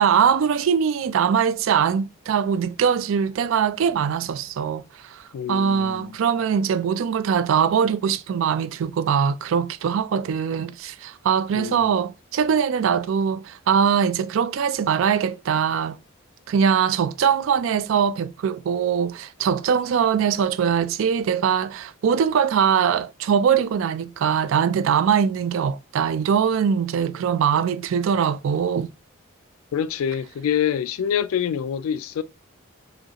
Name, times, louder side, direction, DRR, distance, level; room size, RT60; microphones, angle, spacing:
voice 1, 0.0-16.0 16.5-28.9, right 7 dB, 70° right, 0.3 m, -22 dB
voice 2, 5.3-6.2 11.5-12.0 29.7-32.2, left 8 dB, 80° left, 0.3 m, -26 dB
4.9 x 2.4 x 2.8 m
head